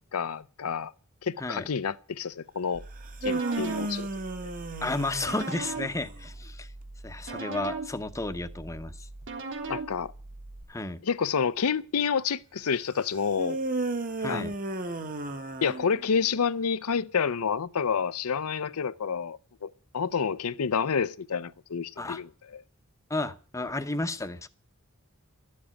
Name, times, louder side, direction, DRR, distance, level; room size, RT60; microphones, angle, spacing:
voice 1, 0.1-0.9 1.2-2.8 3.2-4.1 9.7-10.1 11.0-13.6 14.3-14.4 15.6-22.6, left 6 dB, 90° left, 0.6 m, -29 dB
sound 1, 2.7-10.6, right 3 dB, 60° right, 3.4 m, -40 dB
sound 2, 3.0-6.2 13.4-16.3, right 2 dB, 40° right, 1.5 m, -33 dB
voice 2, 4.8-6.7 7.0-8.9 10.7-11.0 14.2-14.5 22.0-22.2 23.1-24.5, left 2 dB, 15° left, 0.8 m, -32 dB
13.5 x 7.4 x 9.9 m
head